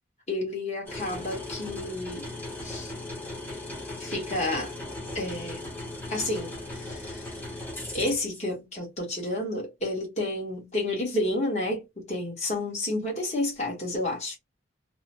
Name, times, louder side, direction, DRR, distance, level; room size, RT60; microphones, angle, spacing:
voice 1, 0.3-2.3 2.6-2.9 4.0-4.7 5.1-5.6 6.1-7.2 7.9-14.4, left 1 dB, 35° left, 1.1 m, -30 dB
sound 1, 0.9-8.4, left 2 dB, 10° left, 0.9 m, -38 dB
3.0 x 2.0 x 2.8 m
head